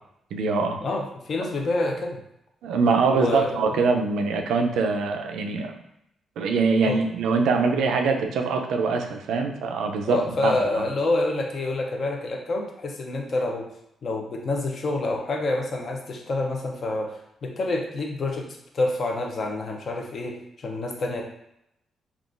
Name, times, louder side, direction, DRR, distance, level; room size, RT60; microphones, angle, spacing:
voice 1, 0.3-0.8 2.6-5.8 6.4-10.9, right 4 dB, 85° right, 4 dB, 0.4 m, -23 dB
voice 2, 0.8-2.2 3.1-3.8 6.9-7.0 10.1-13.7 14.0-18.5 18.7-21.2, left 2 dB, 45° left, 2 dB, 0.5 m, -27 dB
3.6 x 2.3 x 2.4 m, 0.80 s
cardioid pair, 140°, 0 cm